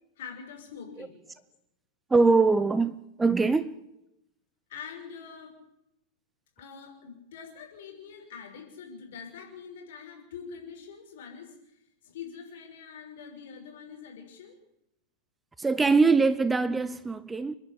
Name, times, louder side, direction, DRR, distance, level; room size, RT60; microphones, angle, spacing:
voice 1, 0.2-1.4 3.4-3.5 4.7-5.5 6.6-11.8 12.0-14.6, left 6 dB, 55° left, 6.1 m, -44 dB
voice 2, 2.1-3.7 15.6-17.6, right 4 dB, 10° right, 0.8 m, -23 dB
30.0 x 11.0 x 8.4 m
figure-of-eight pair, 90°, 0 cm